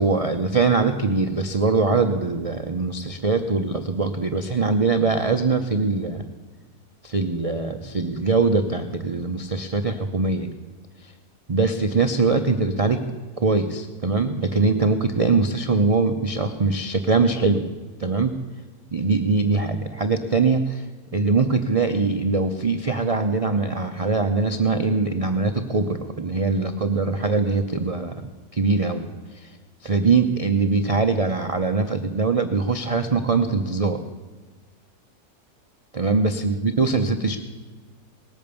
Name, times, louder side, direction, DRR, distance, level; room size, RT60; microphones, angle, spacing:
voice 1, 0.0-6.2 7.0-10.5 11.5-13.0 13.4-17.6 18.0-18.3 18.9-20.8 21.1-28.2 28.5-29.1 29.4-29.5 29.8-34.0 35.9-37.4, right 3 dB, 55° right, 6 dB, 0.4 m, -22 dB
19.0 x 8.8 x 6.9 m, 1.3 s
omnidirectional pair, 1.7 m